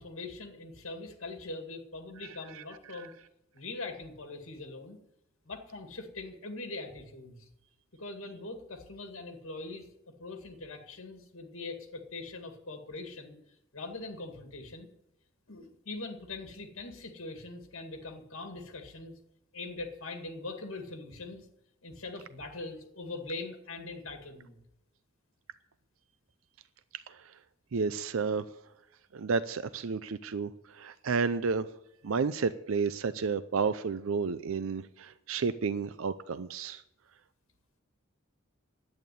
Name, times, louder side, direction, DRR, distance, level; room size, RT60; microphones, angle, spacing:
voice 1, 0.0-3.1 3.5-5.0 5.5-7.5 7.9-9.9 10.2-13.4 13.7-14.9 15.5-19.1 19.5-21.5 21.8-24.6, left 3 dB, 70° left, 5 dB, 2.1 m, -42 dB
voice 2, 27.7-28.5 29.1-31.7 32.0-36.8, right 5 dB, 70° right, 14 dB, 0.5 m, -31 dB
10.5 x 8.9 x 9.3 m, 0.82 s
head